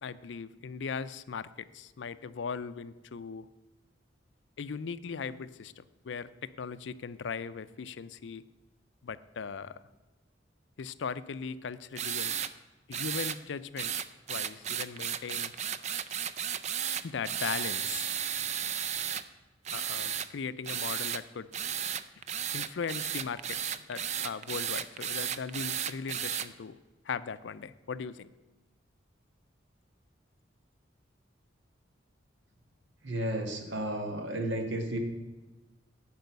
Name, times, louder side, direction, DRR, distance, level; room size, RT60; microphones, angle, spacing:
voice 1, 0.0-3.5 4.6-8.4 9.0-9.8 10.8-12.4 12.9-13.9 14.3-15.5 17.0-18.1 19.7-21.5 22.5-26.8 27.0-28.3, left 5 dB, 70° left, 15 dB, 0.5 m, -38 dB
sound 1, 12.0-12.5 12.9-13.4 13.8-19.2 19.6-20.3 20.6-21.2 21.5-26.5, right 9 dB, 40° right, 0.4 m, -34 dB
voice 2, 33.0-35.0, right 1 dB, 70° right, 4 dB, 1.7 m, -33 dB
10.5 x 5.5 x 8.0 m, 1.2 s
head